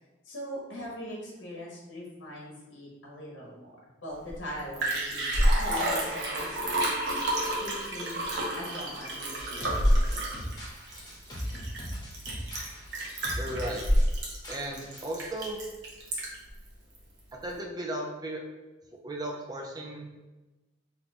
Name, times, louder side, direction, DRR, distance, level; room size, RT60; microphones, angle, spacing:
voice 1, 0.3-3.7 4.0-6.6 7.0-7.2 7.6-8.3 8.6-10.2, equal, 80° left, -3 dB, 0.9 m, -41 dB
Liquid, 4.3-4.4 4.6-16.5 16.9-17.0, equal, 65° right, 0.8 m, -28 dB
sound 1, 9.4-15.2, equal, 20° left, 0.8 m, -40 dB
voice 2, 13.4-13.8 14.5-15.6 17.4-18.4 19.0-20.1, right 1 dB, 20° right, 0 dB, 0.4 m, -35 dB
2.9 x 2.2 x 4.1 m, 1.1 s
head